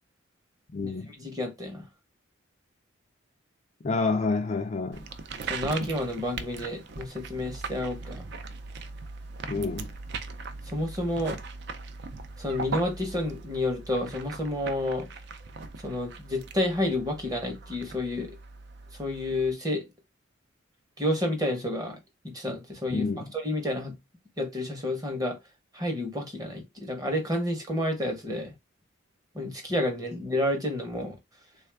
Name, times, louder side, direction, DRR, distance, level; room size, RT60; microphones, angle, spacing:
voice 1, 0.7-1.1 3.8-5.1 9.5-9.9 22.9-23.3, left 3 dB, 35° left, 0.3 m, -28 dB
voice 2, 1.2-1.9 5.5-8.2 10.7-11.4 12.4-15.1 15.8-18.4 19.0-19.9 21.0-22.0 22.2-23.1 23.3-23.9 24.4-25.4 25.7-28.5 29.3-31.2, left 1 dB, 20° right, 0.8 m, -30 dB
sound 1, 4.9-19.5, right 4 dB, 55° right, 0.4 m, -40 dB
3.5 x 2.3 x 3.3 m
head